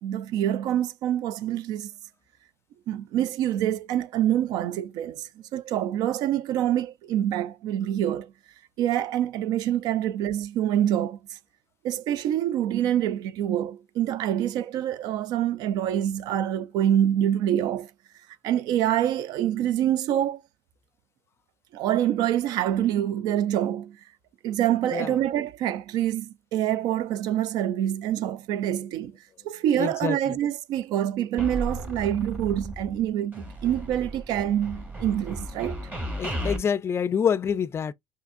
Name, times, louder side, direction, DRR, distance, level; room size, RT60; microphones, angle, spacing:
voice 1, 0.0-1.9 2.9-8.3 8.8-11.4 11.8-17.9 18.4-20.4 21.7-24.0 24.4-29.2 29.4-35.9, right 11 dB, 75° right, 0.4 m, -26 dB
voice 2, 29.8-30.4 36.2-37.9, left 7 dB, 40° left, 0.4 m, -27 dB
sound 1, 31.4-33.0 33.3-36.6, right 1 dB, 25° right, 2.0 m, -34 dB
5.8 x 2.8 x 2.4 m
supercardioid pair, 75°, 7 cm